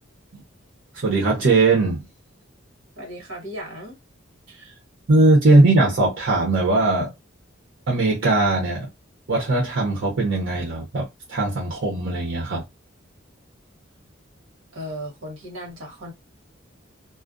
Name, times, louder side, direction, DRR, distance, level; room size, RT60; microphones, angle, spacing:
voice 1, 1.0-2.0 5.1-7.1 7.9-8.9 9.3-12.6, right 2 dB, 65° right, 0.8 m, -19 dB
voice 2, 3.0-4.0 14.7-16.1, equal, 85° right, 1.3 m, -36 dB
2.4 x 2.1 x 2.4 m
head